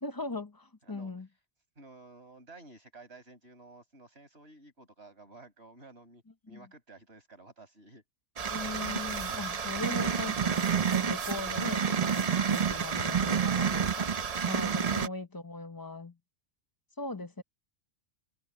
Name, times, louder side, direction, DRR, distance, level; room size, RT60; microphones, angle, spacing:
voice 1, 0.0-1.3 6.5-6.6 8.5-14.1 14.5-16.2 17.0-17.4, left 2 dB, 20° left, 0.7 m, -39 dB
voice 2, 1.8-8.0, right 2 dB, 60° right, 6.7 m, -53 dB
sound 1, 8.4-15.1, right 7 dB, 40° right, 0.7 m, -29 dB
omnidirectional pair, 1.2 m